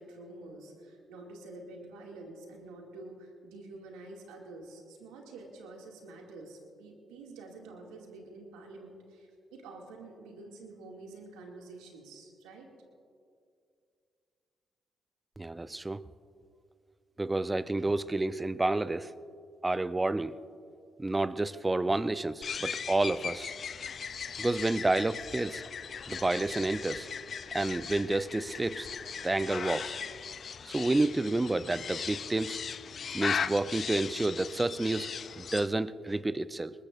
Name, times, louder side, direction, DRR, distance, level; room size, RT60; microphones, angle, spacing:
voice 1, 0.0-12.7, right 2 dB, 85° right, 0 dB, 2.3 m, -48 dB
voice 2, 15.4-16.0 17.2-19.1 19.6-20.3 21.0-23.5 24.4-25.6 26.1-27.1 27.5-28.9 29.2-30.0 30.7-32.6 33.1-35.1 35.4-36.7, right 2 dB, 20° right, 14 dB, 0.6 m, -29 dB
sound 1, 22.4-35.7, left 6 dB, 55° left, 0.4 m, -38 dB
20.5 x 20.5 x 2.6 m, 2.3 s
hypercardioid pair, 50°, 0 cm